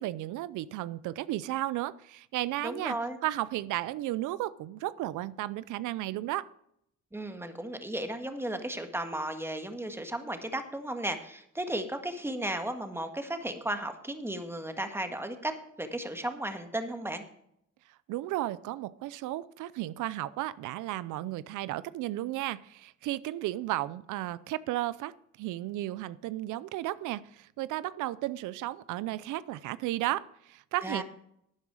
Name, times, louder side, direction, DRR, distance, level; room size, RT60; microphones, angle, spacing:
voice 1, 0.0-3.0 3.2-6.5 18.1-25.1 25.4-31.0, right 15 dB, 90° right, 18 dB, 0.6 m, -34 dB
voice 2, 2.6-3.2 7.1-15.5 15.8-17.2 30.8-31.0, right 1 dB, 10° right, 7 dB, 1.7 m, -35 dB
12.0 x 9.3 x 4.9 m, 0.73 s
cardioid pair, 90°, 30 cm